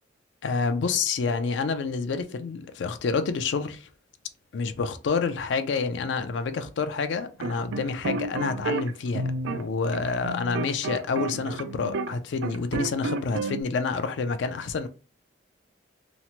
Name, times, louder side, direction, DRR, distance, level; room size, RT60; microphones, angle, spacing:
voice 1, 0.4-3.9 4.5-14.9, left 4 dB, 70° left, 0.4 m, -28 dB
sound 1, 7.4-12.1 12.4-13.6, right 3 dB, 90° right, 0.4 m, -31 dB
2.9 x 2.0 x 2.8 m
head